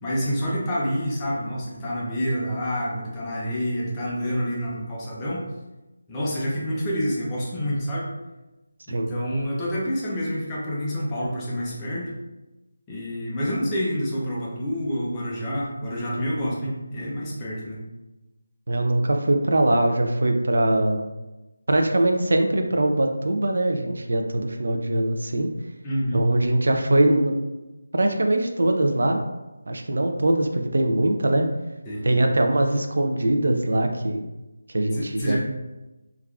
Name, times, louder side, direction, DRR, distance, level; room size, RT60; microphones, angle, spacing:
voice 1, 0.0-5.4 6.1-8.1 8.9-12.1 12.9-17.8 25.8-26.2 31.9-32.1 34.9-35.4, equal, 10° left, -6 dB, 0.4 m, -28 dB
voice 2, 18.7-21.0 21.7-25.5 26.1-27.3 27.9-29.2 29.7-31.5 32.0-34.2 34.7-35.4, right 1 dB, 60° right, 4 dB, 0.3 m, -22 dB
3.3 x 2.3 x 2.2 m, 1.1 s
figure-of-eight pair, 175°, 0 cm